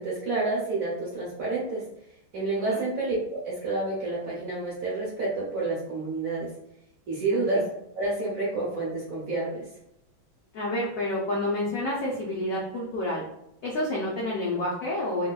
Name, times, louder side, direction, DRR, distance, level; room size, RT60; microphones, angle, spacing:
voice 1, 0.0-1.8 2.3-6.5 7.1-7.6 7.9-9.6, right 3 dB, 65° right, -5 dB, 0.9 m, -29 dB
voice 2, 7.3-7.6 10.5-13.2 13.6-15.3, left 1 dB, 80° left, -4 dB, 0.7 m, -29 dB
3.1 x 2.8 x 2.2 m, 0.81 s
omnidirectional pair, 2.2 m